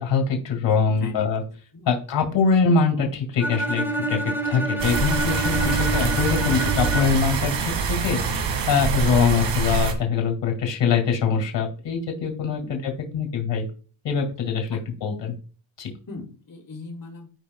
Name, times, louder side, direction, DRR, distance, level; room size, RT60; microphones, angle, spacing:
voice 1, 0.0-1.4 1.9-4.2 4.4-7.5 8.0-13.7 14.0-15.3 15.8-15.9, left 5 dB, 80° left, 3 dB, 2.3 m, -23 dB
voice 2, 0.9-1.9 12.6-12.7 14.7-14.8 16.1-17.3, left 4 dB, 50° left, 0 dB, 3.4 m, -40 dB
Bowed string instrument, 3.4-7.4, right 2 dB, 5° right, 1.4 m, -27 dB
sound 1, 4.8-9.9, right 5 dB, 75° right, 1.9 m, -25 dB
13.5 x 5.1 x 2.3 m, 0.38 s
cardioid pair, 100°, 43 cm